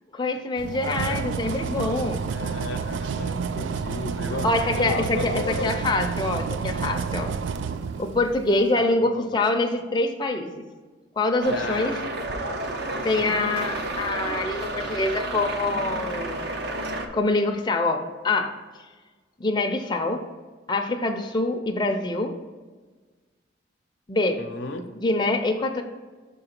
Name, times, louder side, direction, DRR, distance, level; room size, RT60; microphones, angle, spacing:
voice 1, 0.1-2.2 4.4-7.3 8.0-10.6 11.2-12.0 13.0-16.4 17.1-18.5 19.4-20.2 20.7-22.3 24.1-24.4 25.0-25.8, left 2 dB, 25° left, 3 dB, 0.5 m, -25 dB
sound 1, 0.6-8.5, right 5 dB, 75° right, 0.3 m, -30 dB
voice 2, 2.3-5.7 8.8-9.4 11.5-12.0 12.8-13.3 24.4-24.8, left 3 dB, 90° left, 5 dB, 0.7 m, -34 dB
sound 2, 11.4-17.1, right 2 dB, 60° right, 0.7 m, -31 dB
5.9 x 3.8 x 5.8 m, 1.3 s
head